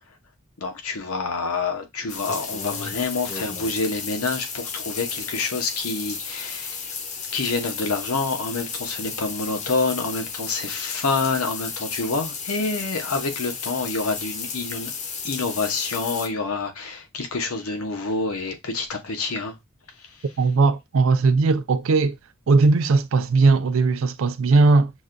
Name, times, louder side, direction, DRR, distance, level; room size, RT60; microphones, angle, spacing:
voice 1, 0.6-6.8 7.3-14.9 15.2-19.5, left 3 dB, 85° left, 0.8 m, -27 dB
sound 1, 2.1-16.3, left 5 dB, 35° left, 0.5 m, -33 dB
voice 2, 20.4-22.2 22.5-24.9, right 3 dB, 70° right, 0.4 m, -18 dB
6.1 x 2.2 x 2.5 m
head